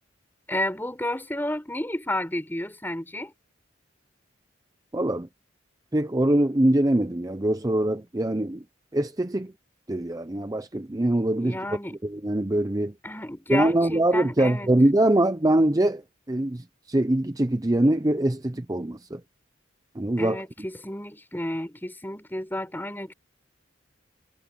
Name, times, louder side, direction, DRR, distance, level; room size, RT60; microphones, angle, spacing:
voice 1, 0.5-3.3 11.3-12.0 13.0-14.7 20.2-23.1, left 1 dB, 10° left, 5.3 m, -31 dB
voice 2, 4.9-5.3 5.9-8.6 8.9-9.5 9.9-12.9 13.5-16.0 16.3-19.2 19.9-20.4, right 1 dB, 20° right, 0.6 m, -23 dB
head